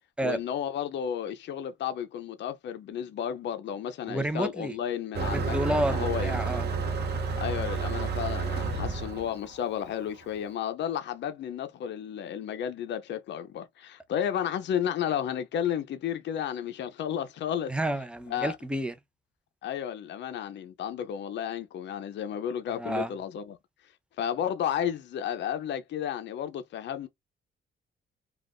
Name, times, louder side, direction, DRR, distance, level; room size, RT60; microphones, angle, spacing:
voice 1, 0.2-6.4 7.4-17.7 18.3-18.6 19.6-23.6 24.2-27.1, left 9 dB, 65° left, 0.6 m, -32 dB
voice 2, 4.1-4.8 5.2-6.7 17.7-18.9 22.7-23.1, right 1 dB, 5° right, 0.5 m, -30 dB
Motor vehicle (road), 5.1-10.3, right 4 dB, 55° right, 0.8 m, -30 dB
2.4 x 2.4 x 3.5 m
cardioid pair, 90°, 20 cm